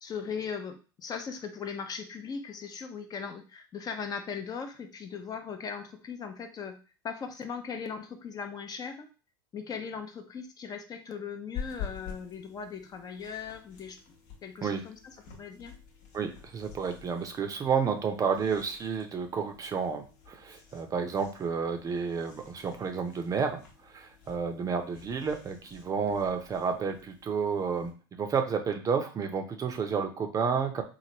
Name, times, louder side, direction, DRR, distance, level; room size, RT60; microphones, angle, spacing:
voice 1, 0.0-6.8 7.0-9.1 9.5-14.0 14.4-15.8, left 6 dB, 30° left, 6 dB, 0.5 m, -39 dB
sound 1, 11.5-27.9, left 7 dB, 65° left, 1.0 m, -48 dB
voice 2, 16.1-27.9 28.2-30.8, right 6 dB, 30° right, 6 dB, 0.5 m, -31 dB
3.1 x 2.4 x 2.8 m, 0.35 s
hypercardioid pair, 85°, 12 cm